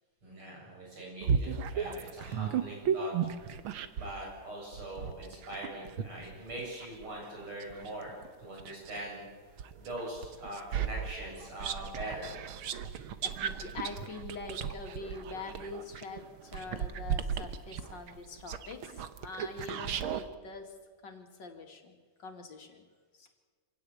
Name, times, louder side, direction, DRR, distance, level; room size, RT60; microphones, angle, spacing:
voice 1, 0.2-3.1 3.9-8.1 8.4-9.2 9.8-12.3, right 1 dB, 90° right, -2 dB, 8.8 m, -42 dB
sound 1, 1.2-4.2 4.7-9.1 9.6-20.3, right 7 dB, 75° right, 1.9 m, -35 dB
voice 2, 13.2-20.8 21.0-22.8 23.2-23.3, left 3 dB, 60° left, 4 dB, 3.0 m, -44 dB
26.0 x 17.0 x 8.7 m, 1.5 s
omnidirectional pair, 2.3 m